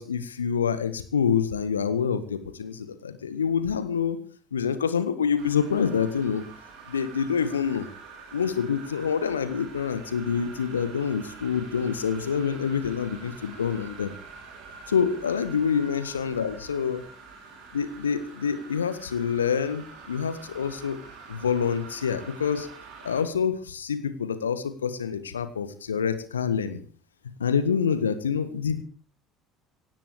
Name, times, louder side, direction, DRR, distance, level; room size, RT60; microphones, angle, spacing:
voice 1, 0.0-4.2 4.5-6.5 6.9-7.9 8.3-14.1 14.9-17.0 17.7-21.0 21.3-22.7 23.0-26.8 27.4-28.8, left 7 dB, 75° left, 13 dB, 1.6 m, -27 dB
sound 1, 5.4-23.2, right 4 dB, 60° right, 6.7 m, -46 dB
18.0 x 15.5 x 4.8 m, 0.41 s
figure-of-eight pair, 60°, 0 cm